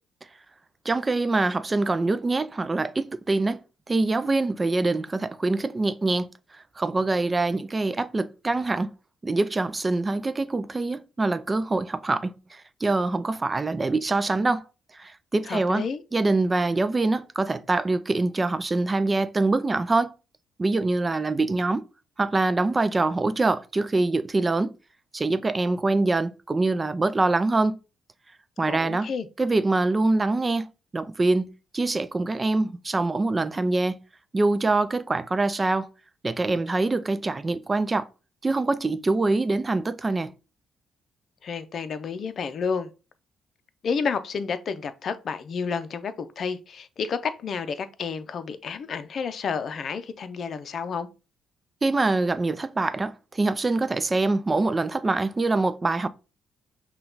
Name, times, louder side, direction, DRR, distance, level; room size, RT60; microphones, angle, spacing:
voice 1, 0.9-3.6 3.9-6.3 6.5-8.9 9.2-14.6 14.9-15.8 16.1-20.1 20.6-21.9 22.2-24.7 25.1-27.8 28.6-29.1 29.4-30.7 30.9-34.0 34.3-35.9 36.2-38.1 38.4-40.3 51.8-56.1, right 2 dB, 25° right, 0.4 m, -24 dB
voice 2, 15.5-16.0 28.7-29.3 41.4-42.9 43.8-51.1, left 5 dB, 55° left, 0.5 m, -30 dB
5.7 x 2.3 x 3.9 m
cardioid pair, 90°, 0 cm